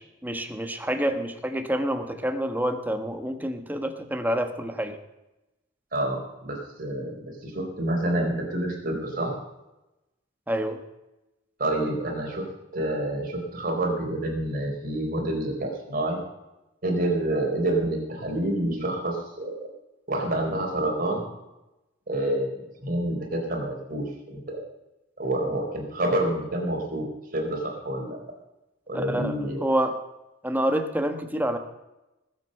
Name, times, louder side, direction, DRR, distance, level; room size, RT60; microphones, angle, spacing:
voice 1, 0.0-5.0 10.5-10.8 28.9-30.0 30.4-31.6, right 1 dB, 10° right, 7 dB, 1.3 m, -28 dB
voice 2, 5.9-9.3 11.6-12.5 12.7-16.2 16.8-19.7 20.1-21.2 22.1-24.6 25.2-27.1 27.3-28.2 28.9-29.7, right 1 dB, 50° right, 1 dB, 4.1 m, -28 dB
19.5 x 7.9 x 6.6 m, 0.97 s
head